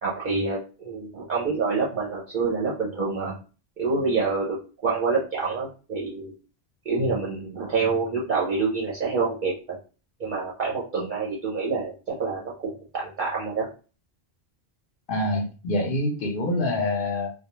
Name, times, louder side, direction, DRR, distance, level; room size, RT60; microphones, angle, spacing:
voice 1, 0.0-3.3 3.8-4.6 4.8-6.3 6.9-9.8 10.2-13.7, right 4 dB, 55° right, -4 dB, 0.7 m, -27 dB
voice 2, 15.1-17.3, left 1 dB, 60° left, 1 dB, 0.7 m, -26 dB
2.2 x 2.2 x 2.9 m, 0.35 s
omnidirectional pair, 1.1 m